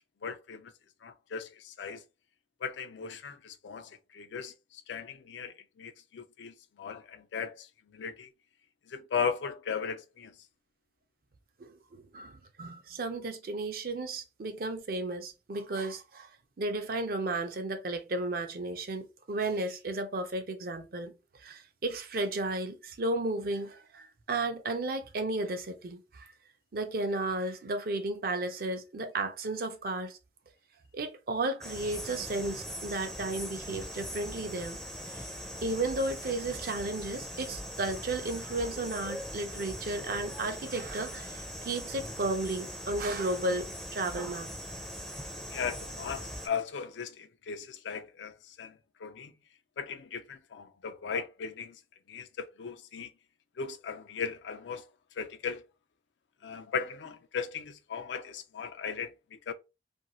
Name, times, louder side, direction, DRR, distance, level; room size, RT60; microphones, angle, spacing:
voice 1, 0.2-0.7 1.0-2.0 2.6-8.3 8.9-10.3 45.5-49.3 49.8-51.8 52.1-53.1 53.6-54.9 55.2-55.6 56.4-59.5, left 6 dB, 80° left, 0.4 m, -37 dB
voice 2, 11.6-16.3 16.6-21.1 21.4-26.3 26.7-30.2 30.9-34.8 35.1-35.3 35.6-44.5, right 2 dB, 55° right, 0.5 m, -34 dB
sound 1, 31.6-46.5, equal, ahead, 0.4 m, -41 dB
2.5 x 2.3 x 3.0 m
head